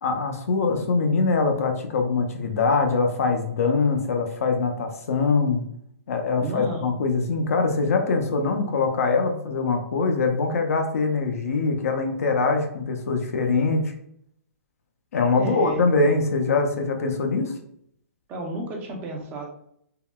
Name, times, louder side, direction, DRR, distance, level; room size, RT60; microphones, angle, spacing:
voice 1, 0.0-5.6 6.1-13.9 15.1-17.5, left 4 dB, 70° left, 4 dB, 0.6 m, -23 dB
voice 2, 6.4-6.9 15.3-15.8 18.3-19.4, right 1 dB, 20° right, 0 dB, 0.6 m, -31 dB
3.6 x 2.2 x 2.2 m, 0.69 s
hypercardioid pair, 155°, 8 cm